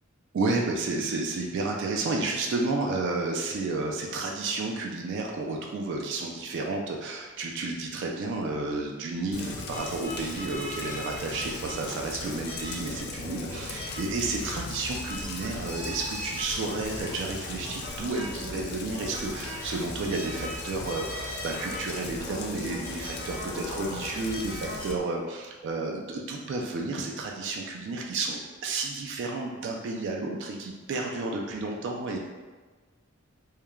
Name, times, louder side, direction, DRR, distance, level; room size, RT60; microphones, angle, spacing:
voice 1, 0.3-32.2, right 3 dB, 60° right, 0 dB, 0.3 m, -31 dB
Rain, 9.3-24.9, left 3 dB, 50° left, 0.3 m, -39 dB
sound 1, 9.7-25.0, equal, 40° right, 1.1 m, -41 dB
3.0 x 2.1 x 2.3 m, 1.3 s
head